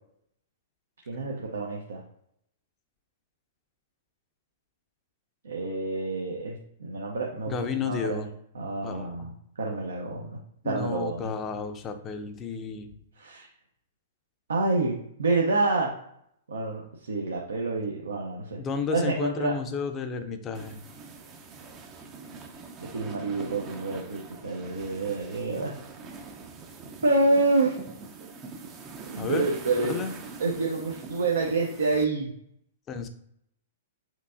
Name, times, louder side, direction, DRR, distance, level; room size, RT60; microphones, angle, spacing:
voice 1, 1.1-2.0 5.4-8.2 8.5-9.3 9.6-10.4 10.6-11.3 13.2-13.5 14.5-15.9 16.5-18.6 18.9-19.5 22.8-25.7 27.0-27.7 29.1-29.9 30.4-32.3, right 3 dB, 70° right, -1 dB, 0.6 m, -28 dB
voice 2, 7.5-8.3 8.8-9.3 10.6-12.9 18.6-20.8 29.2-29.5 29.9-30.1 32.9-33.1, left 6 dB, 25° left, 7 dB, 0.5 m, -32 dB
sound 1, 20.5-32.0, right 4 dB, 25° right, 0.5 m, -43 dB
4.5 x 2.7 x 2.5 m, 0.72 s
figure-of-eight pair, 105°, 0 cm